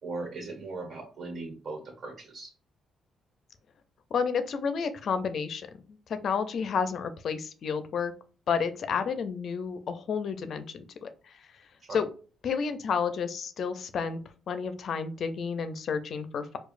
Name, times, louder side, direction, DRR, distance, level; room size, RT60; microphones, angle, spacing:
voice 1, 0.0-2.5 11.9-12.0, right 3 dB, 55° right, 2 dB, 1.5 m, -38 dB
voice 2, 4.1-8.1 8.5-11.4 11.9-12.1 12.4-14.2 14.5-16.6, left 6 dB, 60° left, 10 dB, 0.5 m, -31 dB
4.8 x 2.3 x 2.5 m, 0.38 s
cardioid pair, 75°, 0 cm